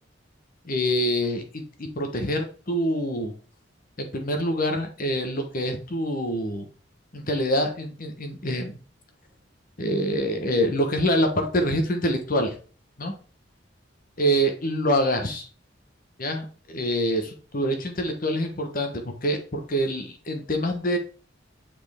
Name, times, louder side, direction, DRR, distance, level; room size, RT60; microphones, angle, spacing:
voice 1, 0.6-1.4 1.8-3.3 4.0-6.6 7.1-8.8 9.8-12.5 13.0-13.1 14.2-15.5 16.2-21.0, equal, 45° left, 5 dB, 1.1 m, -25 dB
7.5 x 4.4 x 3.5 m, 0.38 s
head